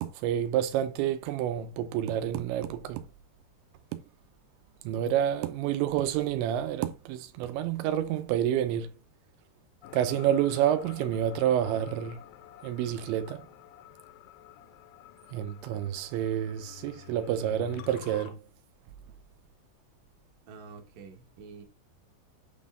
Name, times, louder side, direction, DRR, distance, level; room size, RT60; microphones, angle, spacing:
voice 1, 0.0-3.0 4.8-8.9 9.9-12.2 12.6-13.4 15.3-18.4, right 10 dB, 90° right, 3.0 m, -29 dB
sound 1, 9.8-18.3, left 13 dB, 85° left, 3.1 m, -49 dB
voice 2, 20.5-21.6, right 5 dB, 60° right, 2.8 m, -48 dB
8.4 x 4.2 x 3.7 m
omnidirectional pair, 5.1 m